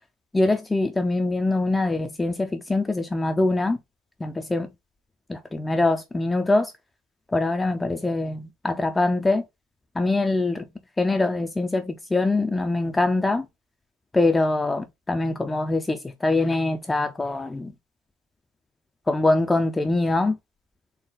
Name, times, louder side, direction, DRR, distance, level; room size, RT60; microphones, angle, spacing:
voice 1, 0.3-3.8 4.2-4.7 5.3-6.7 7.3-9.4 10.0-10.7 11.0-13.5 14.1-17.7 19.1-20.4, left 2 dB, 10° left, 0.3 m, -23 dB
4.0 x 2.3 x 3.6 m
cardioid pair, 165°, 0 cm